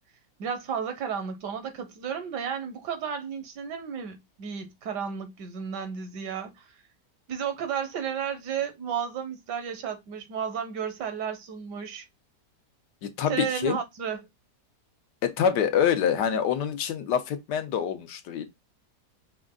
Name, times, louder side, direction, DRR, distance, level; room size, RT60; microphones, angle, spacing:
voice 1, 0.4-6.7 7.3-12.1 13.3-14.2, right 7 dB, 80° right, 1.5 m, -33 dB
voice 2, 13.0-13.8 15.2-18.5, left 8 dB, 80° left, 1.3 m, -26 dB
5.3 x 2.3 x 3.6 m
omnidirectional pair, 1.8 m